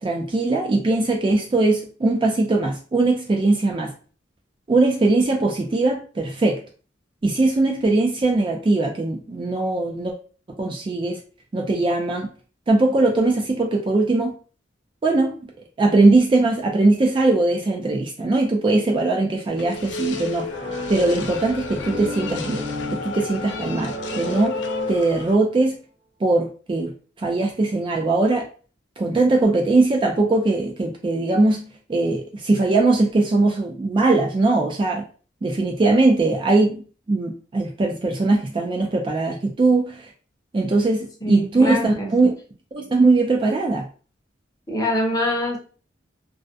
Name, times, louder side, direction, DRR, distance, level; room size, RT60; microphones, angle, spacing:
voice 1, 0.0-3.9 4.7-6.6 7.2-10.1 10.6-11.2 11.5-12.3 12.7-14.3 15.0-15.5 15.8-20.5 20.9-22.7 22.9-24.6 24.9-25.7 26.2-28.4 29.0-31.6 31.9-35.1 35.4-36.8 37.1-40.1 40.5-42.3 42.7-43.9, right 2 dB, 25° right, 1 dB, 0.3 m, -20 dB
sound 1, 19.6-25.3, left 4 dB, 65° left, 0.3 m, -31 dB
sound 2, 20.5-25.4, equal, 80° right, 0.8 m, -33 dB
voice 2, 41.2-42.1 44.7-45.6, left 1 dB, 20° left, -1 dB, 0.6 m, -24 dB
2.4 x 2.1 x 2.5 m, 0.38 s
head